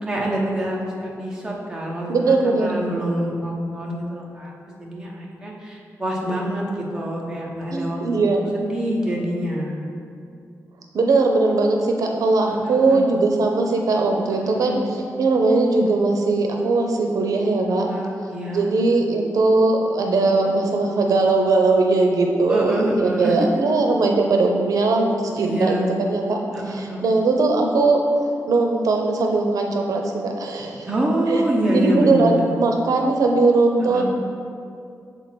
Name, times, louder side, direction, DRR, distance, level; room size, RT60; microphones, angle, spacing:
voice 1, 0.0-4.5 4.8-9.8 12.5-13.0 14.4-14.8 17.9-18.7 22.5-23.4 25.4-25.9 26.5-27.0 30.9-32.5 33.9-34.0, right 1 dB, 10° right, -3 dB, 0.8 m, -26 dB
voice 2, 2.1-2.8 7.7-8.4 10.9-14.8 15.2-17.9 18.5-26.4 26.7-28.0 28.5-30.9 31.3-31.4 31.7-34.0, right 3 dB, 75° right, 2 dB, 0.6 m, -20 dB
6.7 x 4.4 x 4.4 m, 2.4 s
wide cardioid pair, 175°, 6 cm